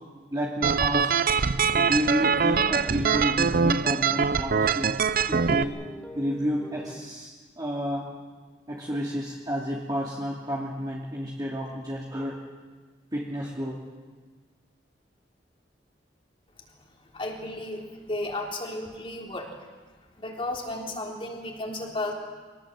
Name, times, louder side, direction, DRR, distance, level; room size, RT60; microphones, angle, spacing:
voice 1, 0.3-1.1 1.7-4.9 5.3-5.7 6.2-7.3 7.6-8.0 8.7-12.3 13.1-13.8, equal, 25° right, -4 dB, 2.6 m, -30 dB
sound 1, 0.6-5.6, right 5 dB, 55° right, 0.6 m, -23 dB
sound 2, 1.6-5.0 5.5-7.0, equal, 5° left, 1.6 m, -43 dB
voice 2, 17.1-19.5 20.2-22.1, left 2 dB, 30° left, 0 dB, 3.7 m, -33 dB
24.5 x 18.5 x 7.8 m, 1.4 s
head